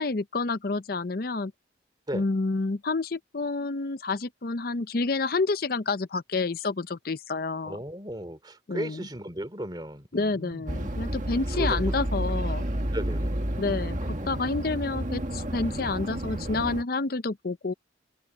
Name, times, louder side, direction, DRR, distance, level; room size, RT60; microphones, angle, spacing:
voice 1, 0.0-1.5 2.1-7.8 8.7-9.1 10.1-12.7 13.6-17.7, left 3 dB, 50° left, 0.6 m, -29 dB
voice 2, 7.6-10.8 11.5-12.0 12.9-13.3 14.0-14.3, right 1 dB, 20° right, 2.8 m, -36 dB
sound 1, 10.7-16.8, right 1 dB, 40° right, 1.7 m, -30 dB
head